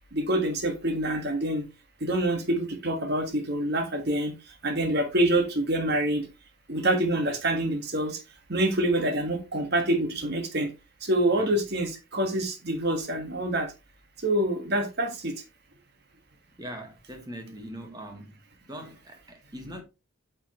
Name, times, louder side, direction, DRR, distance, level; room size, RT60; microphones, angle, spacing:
voice 1, 0.1-1.7 2.0-6.3 6.7-8.2 8.5-10.7 11.0-13.7 14.2-15.4, right 1 dB, 50° right, 1.7 m, -26 dB
voice 2, 16.6-18.3 18.7-19.8, equal, 20° right, 1.7 m, -41 dB
8.7 x 5.5 x 3.1 m
head